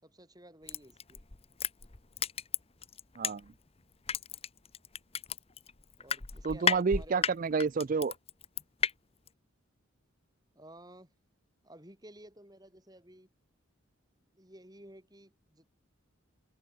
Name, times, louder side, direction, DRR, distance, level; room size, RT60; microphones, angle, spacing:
voice 1, 0.0-1.2 6.0-7.3 10.5-11.1 11.6-13.3 14.3-15.7, right 1 dB, 20° right, 6.3 m, -53 dB
Crushing, 0.7-3.7 4.1-8.9 9.3-9.4, left 6 dB, 25° left, 1.0 m, -33 dB
voice 2, 3.2-3.5 6.4-8.1, right 5 dB, 40° right, 0.4 m, -30 dB
head